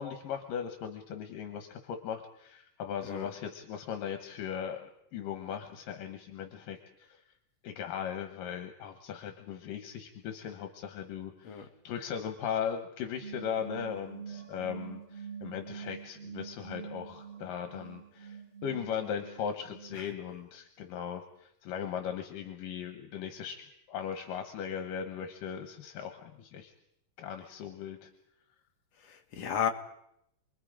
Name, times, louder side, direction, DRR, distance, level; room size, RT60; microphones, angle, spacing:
voice 1, 0.0-7.2 7.6-26.7 27.2-28.1, left 8 dB, 80° left, 5 dB, 3.0 m, -38 dB
sound 1, 13.2-20.0, right 7 dB, 50° right, 5.9 m, -45 dB
voice 2, 29.0-29.7, left 8 dB, 55° left, 5 dB, 2.4 m, -33 dB
29.0 x 22.0 x 5.0 m, 0.76 s
omnidirectional pair, 3.9 m